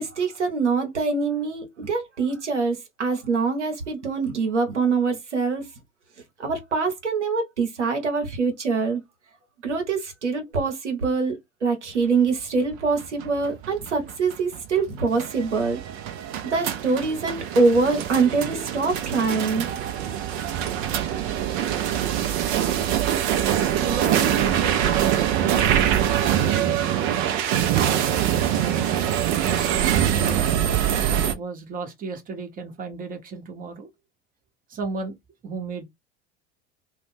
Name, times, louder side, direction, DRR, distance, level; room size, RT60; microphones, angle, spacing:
voice 1, 0.0-5.7 6.4-9.0 9.6-15.8 16.4-19.7, right 4 dB, 80° right, 0.9 m, -24 dB
sound 1, 12.7-31.3, right 10 dB, 45° right, 0.6 m, -24 dB
voice 2, 22.4-22.8 23.8-25.1 25.4-27.1 28.0-30.5 31.4-33.9 34.7-35.1 35.4-35.9, right 4 dB, 25° right, 0.9 m, -34 dB
2.4 x 2.2 x 3.5 m
figure-of-eight pair, 75°, 34 cm